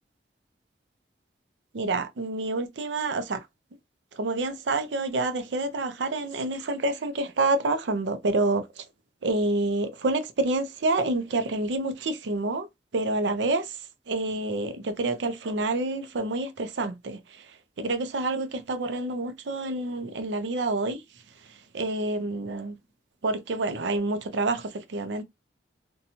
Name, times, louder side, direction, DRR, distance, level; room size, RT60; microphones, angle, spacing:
voice 1, 1.7-3.5 4.1-8.8 9.2-12.7 12.9-21.0 21.4-22.8 23.2-25.2, right 2 dB, 80° right, 0.5 m, -28 dB
2.7 x 2.2 x 2.8 m
head